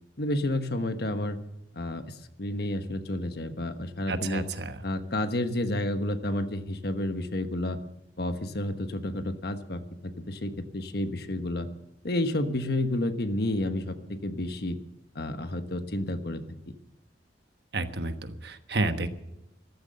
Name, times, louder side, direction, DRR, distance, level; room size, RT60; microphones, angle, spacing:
voice 1, 0.2-1.4 1.7-4.5 4.8-7.8 8.2-11.7 12.0-14.8 15.1-16.7, left 1 dB, 60° left, 9 dB, 1.3 m, -30 dB
voice 2, 4.1-4.7 17.7-19.1, right 2 dB, 60° right, 8 dB, 1.3 m, -30 dB
14.5 x 14.0 x 6.8 m, 0.87 s
head